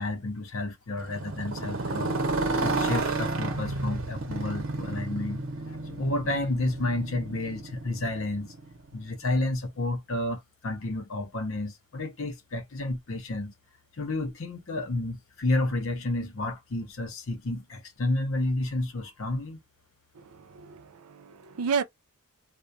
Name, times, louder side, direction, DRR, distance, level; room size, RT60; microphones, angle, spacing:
voice 1, 0.0-2.2 2.6-5.4 5.7-8.5 8.9-13.5 14.0-19.6, left 2 dB, 65° left, 0.7 m, -31 dB
Motorcycle, 1.0-9.0, right 2 dB, 60° right, 0.8 m, -31 dB
voice 2, 20.2-21.8, right 6 dB, 90° right, 0.5 m, -32 dB
2.3 x 2.1 x 2.6 m
head